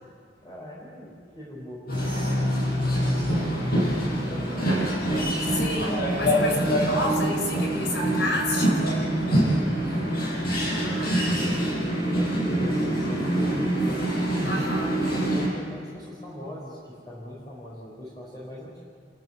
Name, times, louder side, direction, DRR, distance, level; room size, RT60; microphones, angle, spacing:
voice 1, 0.4-2.3 2.9-3.4 3.7-4.8 6.5-6.9 9.0-10.1 11.0-14.1 15.3-18.8, equal, 25° left, -6 dB, 4.4 m, -41 dB
sound 1, 1.9-15.5, right 1 dB, 60° left, 6.2 m, -25 dB
voice 2, 5.5-9.1 10.7-11.2 14.4-15.0, left 1 dB, 80° left, 1 dB, 5.6 m, -30 dB
29.0 x 13.5 x 7.7 m, 2.2 s
head